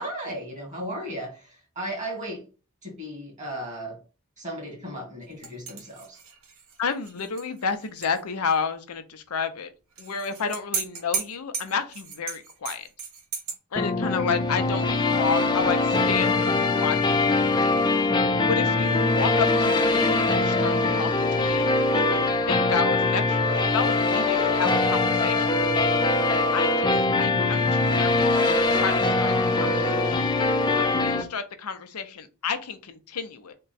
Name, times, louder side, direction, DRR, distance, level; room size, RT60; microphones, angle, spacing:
voice 1, 0.0-2.4 2.8-4.0 4.4-6.2, right 1 dB, 35° right, 1.8 m, -35 dB
sound 1, 5.4-8.2 8.5-8.6 10.0-13.6, right 6 dB, 65° right, 0.8 m, -35 dB
voice 2, 6.8-9.7 10.0-12.9 13.7-17.8 18.3-22.2 22.4-25.9 26.5-30.2 30.7-33.5, left 5 dB, 90° left, 0.6 m, -31 dB
sound 2, 13.8-31.2, left 3 dB, 20° left, 0.5 m, -22 dB
3.7 x 2.2 x 3.9 m
head